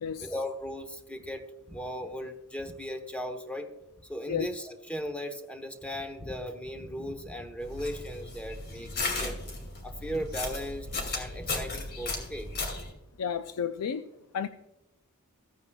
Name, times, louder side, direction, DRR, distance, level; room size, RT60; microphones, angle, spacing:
voice 1, 0.2-3.7 4.1-9.4 9.8-10.9 11.1-12.5, equal, 5° left, 6 dB, 1.0 m, -37 dB
sound 1, 7.6-12.9, left 3 dB, 50° left, 2.7 m, -35 dB
voice 2, 13.2-14.0 14.3-14.5, left 7 dB, 85° left, 10 dB, 0.4 m, -31 dB
15.5 x 9.2 x 2.3 m, 0.93 s
head